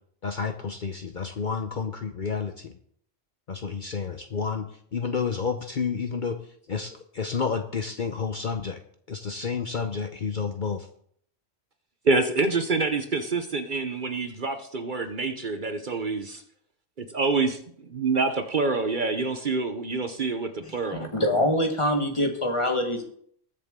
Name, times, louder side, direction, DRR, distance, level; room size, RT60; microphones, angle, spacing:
voice 1, 0.2-2.7 3.5-6.4 6.7-8.8 9.1-10.9, left 5 dB, 50° left, 0.8 m, -30 dB
voice 2, 12.0-16.4 17.0-21.1, right 3 dB, 45° right, 0.9 m, -27 dB
voice 3, 20.9-23.1, left 1 dB, 25° left, 1.4 m, -24 dB
21.0 x 7.2 x 3.7 m
omnidirectional pair, 1.2 m